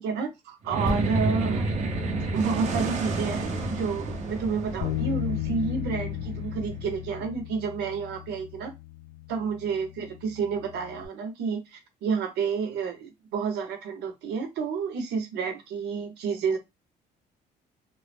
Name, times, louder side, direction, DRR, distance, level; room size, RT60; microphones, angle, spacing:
voice 1, 0.0-1.7 2.0-8.7 9.3-16.6, right 5 dB, 80° right, 0.8 m, -30 dB
sound 1, 0.6-7.3, right 2 dB, 45° right, 0.7 m, -30 dB
sound 2, 0.9-4.5 4.8-5.0, equal, 5° left, 0.5 m, -40 dB
Bass guitar, 4.8-11.1, left 15 dB, 85° left, 0.5 m, -35 dB
2.2 x 2.0 x 3.3 m
cardioid pair, 110°, 17 cm